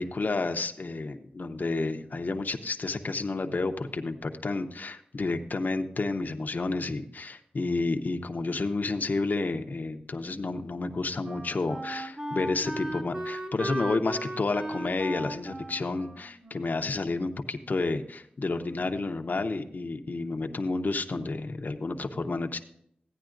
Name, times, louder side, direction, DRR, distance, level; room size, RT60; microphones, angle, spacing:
voice 1, 0.0-22.6, left 3 dB, 60° left, 5 dB, 0.7 m, -30 dB
Wind instrument woodwind instrument, 10.2-17.5, right 1 dB, 30° right, 1.1 m, -37 dB
15.0 x 9.8 x 2.5 m, 0.70 s
wide cardioid pair, 85°, 3 cm